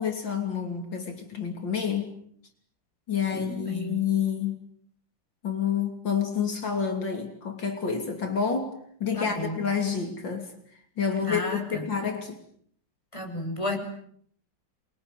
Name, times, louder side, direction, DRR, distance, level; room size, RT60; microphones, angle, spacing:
voice 1, 0.0-2.1 3.1-4.6 5.4-8.7 9.0-10.5 11.0-12.4, left 7 dB, 75° left, 3.7 m, -28 dB
voice 2, 3.3-4.0 9.1-9.6 11.2-11.9 13.1-13.8, left 1 dB, 15° left, 6.5 m, -33 dB
27.5 x 23.0 x 9.1 m
omnidirectional pair, 2.1 m